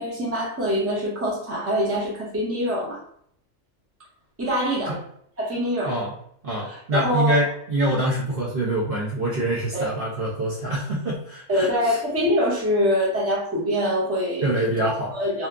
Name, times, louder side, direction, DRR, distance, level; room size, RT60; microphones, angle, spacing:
voice 1, 0.0-3.0 4.4-5.0 5.4-6.0 6.6-7.4 9.7-9.9 11.5-14.8 15.1-15.5, equal, 15° right, -5 dB, 0.7 m, -24 dB
voice 2, 6.4-12.0 14.4-15.1, right 1 dB, 55° right, -5 dB, 0.8 m, -25 dB
2.8 x 2.2 x 2.3 m, 0.66 s
omnidirectional pair, 1.3 m